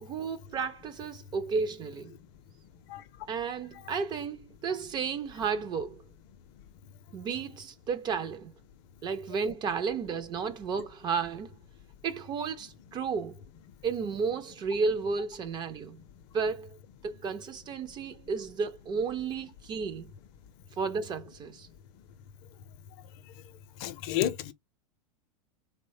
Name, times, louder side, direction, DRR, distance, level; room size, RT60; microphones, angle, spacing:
voice 1, 0.0-2.2 3.3-6.0 7.1-8.5 9.0-11.6 12.0-13.4 13.8-16.0 16.3-20.1 20.8-21.7, right 5 dB, 25° right, 0.3 m, -33 dB
voice 2, 23.8-24.5, left 12 dB, 45° left, 0.5 m, -30 dB
3.0 x 2.1 x 2.6 m
hypercardioid pair, 110°, 19 cm